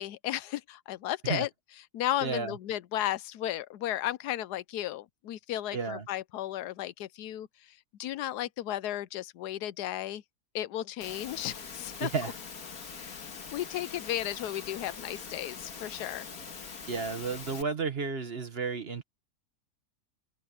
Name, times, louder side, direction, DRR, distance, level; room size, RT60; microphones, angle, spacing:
voice 1, 0.0-1.5 1.9-7.5 8.0-10.2 10.5-12.1 12.9-13.3 13.5-16.3, left 13 dB, 80° left, 1.2 m, -34 dB
voice 2, 2.2-2.5 5.7-6.1 12.0-12.3 16.9-19.0, right 5 dB, 40° right, 1.5 m, -32 dB
Engine / Mechanisms, 11.0-17.6, left 5 dB, 60° left, 2.2 m, -43 dB
omnidirectional pair, 1.7 m